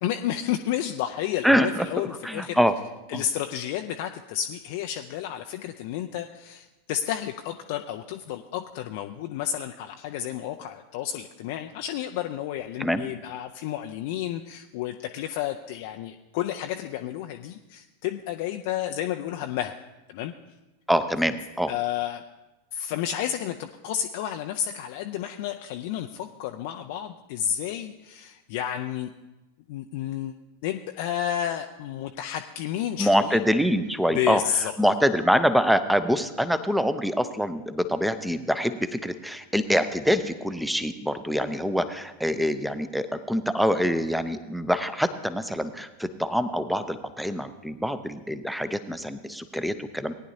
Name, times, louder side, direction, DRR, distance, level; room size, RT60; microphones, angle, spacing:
voice 1, 0.0-2.6 3.1-19.7 20.1-20.3 21.7-22.2 22.7-29.1 29.7-30.3 30.6-33.4 34.1-34.7, left 10 dB, 50° left, 5 dB, 0.4 m, -31 dB
voice 2, 1.4-1.9 2.2-2.7 3.1-3.2 12.8-13.0 20.9-21.7 33.0-34.4 34.8-50.1, equal, ahead, 12 dB, 0.6 m, -25 dB
18.5 x 10.0 x 2.8 m, 1.1 s
figure-of-eight pair, 90°, 0 cm